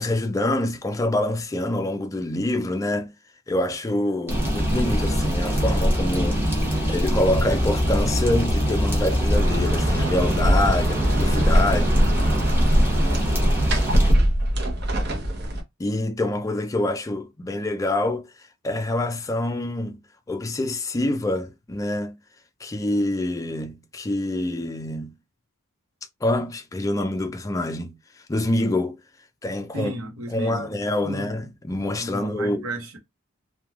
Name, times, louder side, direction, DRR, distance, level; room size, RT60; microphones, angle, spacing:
voice 1, 0.0-3.1 3.5-11.9 15.8-18.3 18.6-20.0 20.3-22.2 22.6-25.1 26.2-27.9 28.3-29.0 29.4-29.9 30.3-32.6, left 1 dB, 15° left, 0.3 m, -26 dB
sound 1, 4.3-14.1, equal, 10° right, 0.9 m, -22 dB
sound 2, 9.3-15.6, right 1 dB, 50° right, 0.7 m, -24 dB
voice 2, 11.7-12.2 29.7-30.7 31.0-31.3 31.8-33.0, right 1 dB, 85° right, 0.9 m, -34 dB
3.1 x 2.2 x 2.3 m
head